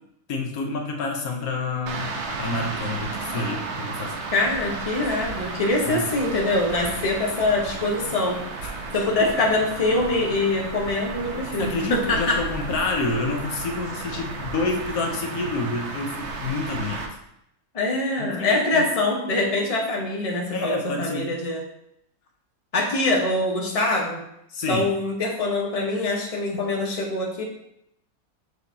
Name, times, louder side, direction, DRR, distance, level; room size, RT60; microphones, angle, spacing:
voice 1, 0.3-2.1 2.4-4.2 5.9-6.1 8.6-8.7 11.6-17.1 18.4-18.9 20.5-21.4 24.5-24.9 26.5-26.6, left 3 dB, 75° left, 2 dB, 1.4 m, -28 dB
sound 1, 1.9-17.1, right 3 dB, 55° right, 1.0 m, -33 dB
voice 2, 4.3-8.4 8.9-12.4 17.7-21.6 22.7-24.2 24.7-27.4, left 2 dB, 25° left, -1 dB, 1.1 m, -24 dB
6.4 x 6.4 x 2.8 m, 0.78 s
omnidirectional pair, 1.6 m